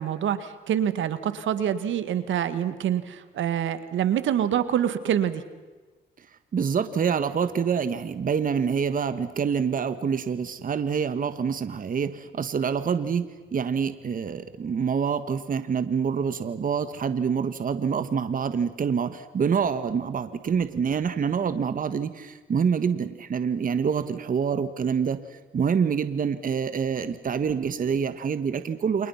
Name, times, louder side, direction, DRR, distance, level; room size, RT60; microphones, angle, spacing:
voice 1, 0.0-5.4, right 10 dB, 75° right, 12 dB, 1.9 m, -26 dB
voice 2, 6.5-29.1, right 6 dB, 45° right, 11 dB, 1.5 m, -26 dB
29.5 x 27.5 x 5.8 m, 1.3 s
cardioid pair, 90°, 20 cm